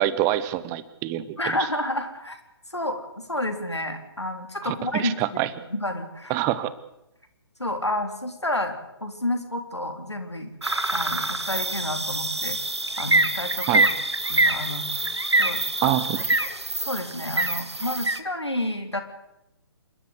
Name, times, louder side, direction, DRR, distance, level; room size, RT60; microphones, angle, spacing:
voice 1, 0.0-1.6 4.6-5.5 6.3-6.7 13.7-13.9 15.8-16.3, right 13 dB, 20° right, 16 dB, 0.9 m, -26 dB
voice 2, 1.4-2.4 2.7-5.4 5.7-6.4 7.6-10.5 10.9-12.6 13.0-13.7 14.3-14.9 15.4-15.6 16.8-19.0, left 1 dB, 85° left, 5 dB, 3.6 m, -30 dB
sound 1, 10.6-18.2, right 2 dB, 80° right, 1.8 m, -25 dB
28.0 x 13.0 x 8.1 m, 0.88 s
figure-of-eight pair, 135°, 14 cm